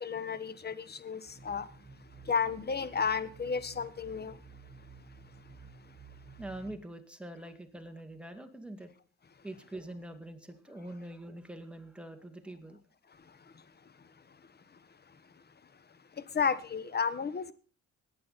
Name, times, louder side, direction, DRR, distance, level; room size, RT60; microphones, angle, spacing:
voice 1, 0.0-1.7 2.2-4.4 16.2-17.5, left 6 dB, 35° left, 1.2 m, -32 dB
sound 1, 1.3-6.8, right 5 dB, 50° right, 6.2 m, -53 dB
voice 2, 6.4-8.9 9.4-12.8, right 1 dB, 5° right, 2.2 m, -44 dB
19.5 x 8.7 x 4.2 m
cardioid pair, 90°, 30 cm